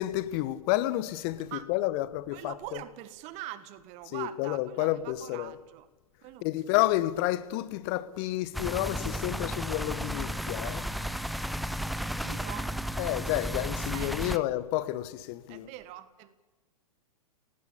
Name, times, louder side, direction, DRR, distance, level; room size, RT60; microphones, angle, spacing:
voice 1, 0.0-2.8 4.1-5.5 6.4-10.9 13.0-15.7, left 15 dB, 40° left, 1.5 m, -30 dB
voice 2, 2.3-5.9 6.2-6.9 12.2-12.8 13.9-14.4 15.5-16.3, right 14 dB, 35° right, 1.7 m, -43 dB
sound 1, 8.5-14.4, equal, ahead, 0.8 m, -33 dB
29.0 x 18.5 x 8.5 m
figure-of-eight pair, 105°, 19 cm